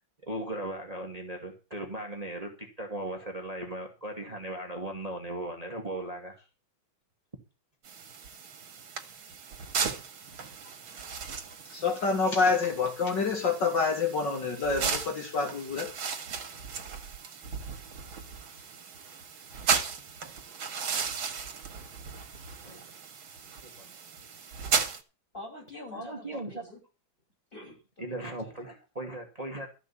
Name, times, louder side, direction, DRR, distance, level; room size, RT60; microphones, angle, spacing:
voice 1, 0.2-6.4 22.6-22.9 23.6-23.9 25.9-26.6 28.0-29.7, right 1 dB, 20° right, 2.2 m, -37 dB
sound 1, 7.8-25.0, right 6 dB, 85° right, 2.5 m, -36 dB
voice 2, 11.7-15.9, left 4 dB, 60° left, 2.6 m, -27 dB
voice 3, 25.3-26.8 27.5-28.6, left 1 dB, 25° left, 6.7 m, -46 dB
14.0 x 5.8 x 8.4 m
omnidirectional pair, 2.2 m